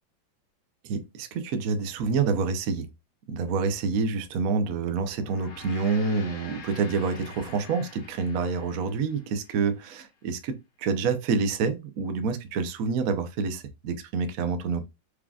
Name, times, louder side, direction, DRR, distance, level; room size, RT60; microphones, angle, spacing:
voice 1, 0.8-2.9 3.3-10.5 10.8-14.9, right 5 dB, 60° right, 1.0 m, -27 dB
Gong, 5.1-9.8, left 5 dB, 60° left, 0.6 m, -46 dB
4.8 x 3.6 x 2.4 m
omnidirectional pair, 2.0 m